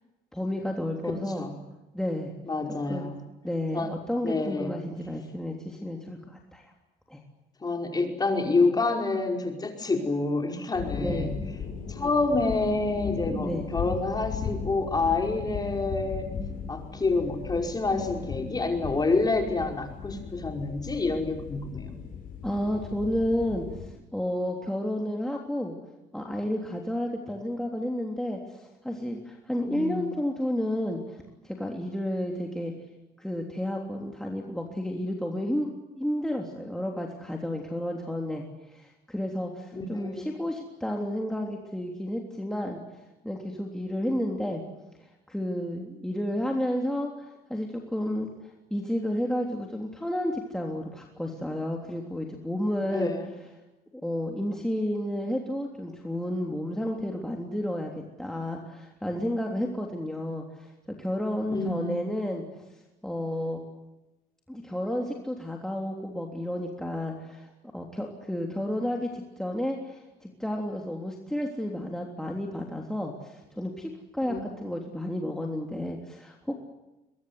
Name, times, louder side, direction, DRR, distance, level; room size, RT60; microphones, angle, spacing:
voice 1, 0.3-1.5 1.9-2.3 2.9-3.2 3.4-6.6 7.1-7.2 11.0-11.3 13.4-13.7 22.4-25.7 26.1-32.7 33.2-35.7 36.0-42.8 43.2-44.6 45.0-48.3 48.7-53.1 54.0-57.9 58.2-62.4 63.0-63.6 64.5-76.5, left 1 dB, 5° left, 0 dB, 3.3 m, -31 dB
voice 2, 2.4-3.2 3.7-3.9 4.2-4.7 7.6-11.3 11.9-16.3 16.7-22.0 29.7-30.1 39.7-40.3 52.9-53.3 61.5-62.0 74.3-74.4, left 3 dB, 25° left, 3 dB, 5.3 m, -28 dB
sound 1, 10.7-23.9, left 6 dB, 55° left, 5.8 m, -37 dB
23.5 x 22.0 x 9.7 m, 1.0 s
cardioid pair, 110°, 17 cm